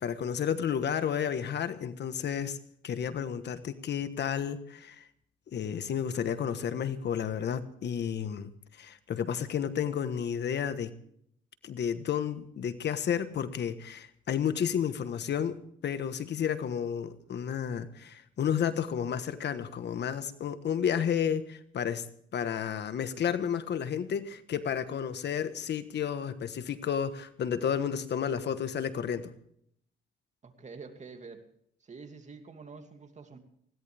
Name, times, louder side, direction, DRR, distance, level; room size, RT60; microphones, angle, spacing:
voice 1, 0.0-2.6 2.8-5.1 5.5-10.9 11.6-22.0 22.3-29.3, left 8 dB, 60° left, 11 dB, 1.3 m, -31 dB
voice 2, 30.4-31.4 31.8-33.4, right 4 dB, 35° right, 6 dB, 2.6 m, -47 dB
20.5 x 17.0 x 3.5 m, 0.67 s
cardioid pair, 90°, 20 cm